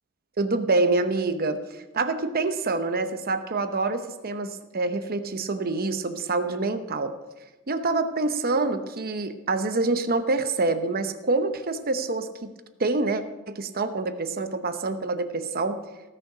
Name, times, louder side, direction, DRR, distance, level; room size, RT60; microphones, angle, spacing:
voice 1, 0.4-7.2 7.7-12.5 12.8-15.8, right 3 dB, 40° right, 8 dB, 0.9 m, -26 dB
18.5 x 6.7 x 5.0 m, 1.1 s
head